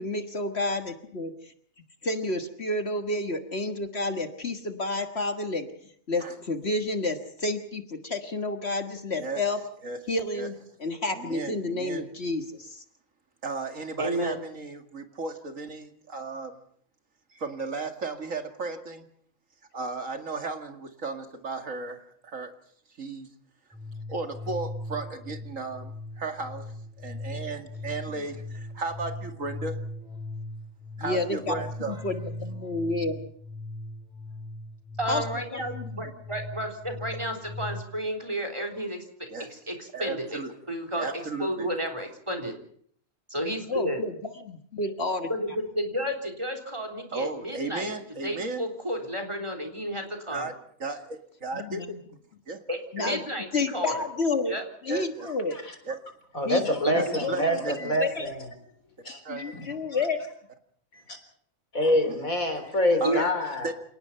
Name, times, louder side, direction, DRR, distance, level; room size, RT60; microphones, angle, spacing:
voice 1, 0.0-1.5 2.0-5.7 6.1-9.6 10.1-12.8 31.0-33.3 35.1-35.2 35.5-36.0 43.7-45.3 51.5-52.0 52.9-53.2 53.5-54.5 54.8-55.6 56.5-56.7 57.2-57.5 58.0-58.3 59.3-60.2, left 2 dB, 50° left, 7 dB, 1.8 m, -30 dB
voice 2, 11.1-12.1 13.4-16.6 17.3-19.1 19.7-22.5 23.0-23.3 24.1-29.8 31.0-32.0 39.3-39.5 39.9-40.5 41.0-41.7 47.1-48.7 50.3-50.5 50.8-51.8 52.5-52.6 53.0-53.1 54.9-55.3 55.9-56.0 56.9-58.0 59.2-59.4 62.1-62.3 63.0-63.3 63.6-63.7, right 3 dB, 65° right, 6 dB, 2.5 m, -35 dB
voice 3, 14.0-14.4 35.0-40.4 40.7-41.1 41.4-42.5 43.3-44.0 45.3-47.9 48.2-50.5 52.7-53.9 54.5-54.6 56.8-57.2 63.0-63.3, equal, 20° right, 5 dB, 3.7 m, -32 dB
sound 1, 23.7-37.8, left 2 dB, 5° right, 2.9 m, -39 dB
voice 4, 56.3-58.5 59.0-59.7 60.9-61.2 61.7-63.7, equal, 75° left, 7 dB, 4.4 m, -26 dB
28.0 x 18.5 x 5.7 m, 0.62 s
omnidirectional pair, 1.5 m